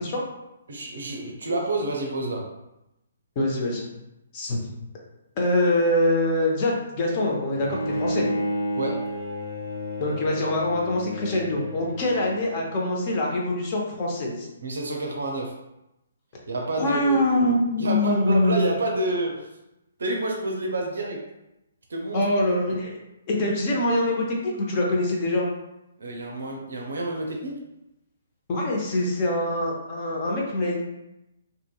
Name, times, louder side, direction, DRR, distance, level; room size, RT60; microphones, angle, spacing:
voice 1, 0.7-2.5 8.8-9.1 14.6-15.5 16.5-17.2 17.8-19.5 20.0-21.2 21.9-22.3 26.0-27.6, right 2 dB, 60° right, 1 dB, 0.5 m, -28 dB
voice 2, 3.4-3.9 4.3-4.6 5.4-8.3 10.0-14.5 16.8-18.6 22.1-23.0 23.3-25.5 28.5-30.8, left 1 dB, 30° left, -2 dB, 0.6 m, -24 dB
Bowed string instrument, 7.5-12.8, equal, 70° left, 0.9 m, -31 dB
2.7 x 2.6 x 2.3 m, 0.89 s
figure-of-eight pair, 130°, 0 cm